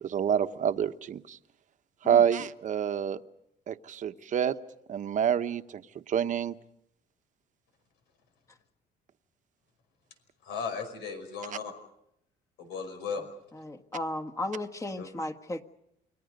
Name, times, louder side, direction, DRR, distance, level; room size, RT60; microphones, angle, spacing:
voice 1, 0.0-1.4 2.0-3.2 3.7-4.5 4.9-5.6 6.1-6.5, right 8 dB, 50° right, 10 dB, 1.0 m, -27 dB
voice 2, 10.4-11.7 12.6-13.2 15.0-15.1, left 5 dB, 90° left, 7 dB, 5.4 m, -36 dB
voice 3, 13.6-15.6, left 2 dB, 20° left, 4 dB, 1.6 m, -35 dB
29.0 x 23.5 x 5.3 m, 0.77 s
cardioid pair, 110°, 17 cm